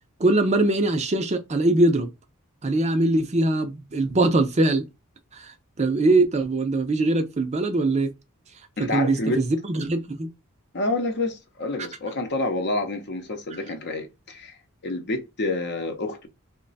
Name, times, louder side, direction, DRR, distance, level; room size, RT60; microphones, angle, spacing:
voice 1, 0.2-2.1 2.6-4.9 5.3-8.1 8.8-10.3, right 2 dB, 30° right, 0.5 m, -22 dB
voice 2, 8.8-9.4 10.7-14.6 14.8-16.3, left 2 dB, 50° left, 0.7 m, -28 dB
3.0 x 2.2 x 4.0 m
head